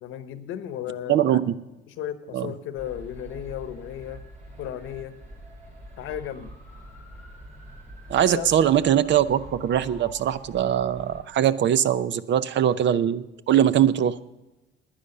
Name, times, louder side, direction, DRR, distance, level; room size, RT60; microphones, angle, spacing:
voice 1, 0.0-1.5 1.9-4.2 4.6-5.1 6.0-6.5 8.2-8.6, left 10 dB, 90° left, 12 dB, 0.9 m, -35 dB
voice 2, 1.1-1.5 2.3-2.5 8.1-14.2, right 10 dB, 65° right, 16 dB, 0.6 m, -22 dB
sound 1, 2.7-11.2, equal, 40° right, 4.9 m, -45 dB
10.0 x 10.0 x 6.6 m, 1.0 s
cardioid pair, 90°, 20 cm